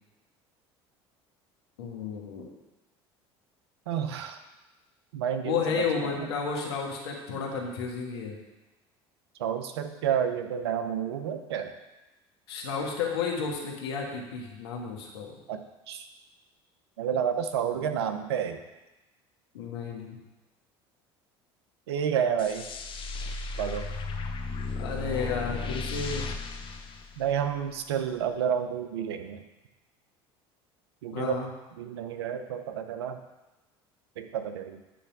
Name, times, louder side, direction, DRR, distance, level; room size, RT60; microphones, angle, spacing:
voice 1, 1.8-2.5 5.4-8.4 12.5-15.4 17.7-18.0 19.5-20.2 24.8-26.3 31.1-31.5, left 5 dB, 85° left, 0 dB, 1.5 m, -32 dB
voice 2, 3.9-4.4 5.1-5.6 6.2-6.3 9.4-11.7 15.5-15.6 15.9-16.1 17.0-18.6 21.9-22.7 23.6-23.9 27.2-29.4 31.0-31.4 31.8-33.2 34.2-34.8, right 8 dB, 85° right, 8 dB, 0.7 m, -30 dB
sound 1, 22.4-27.7, left 3 dB, 40° left, 0.9 m, -35 dB
10.0 x 3.4 x 5.9 m, 1.0 s
hypercardioid pair, 80°, 13 cm